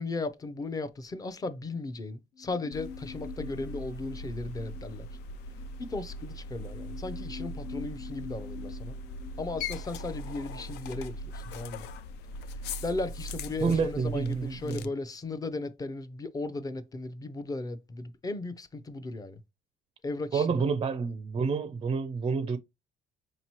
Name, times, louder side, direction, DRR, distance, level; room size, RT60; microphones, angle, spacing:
voice 1, 0.0-5.1 5.8-9.0 9.4-11.8 12.8-19.4 20.0-20.6, left 3 dB, 20° left, 0.5 m, -36 dB
sound 1, 2.3-11.7 11.9-12.0, left 6 dB, 65° left, 1.1 m, -47 dB
sound 2, 2.7-14.9, left 1 dB, 85° left, 0.4 m, -40 dB
voice 2, 13.6-14.9 20.3-22.6, right 5 dB, 30° right, 0.4 m, -29 dB
5.2 x 2.9 x 2.9 m
cardioid pair, 110°, 17 cm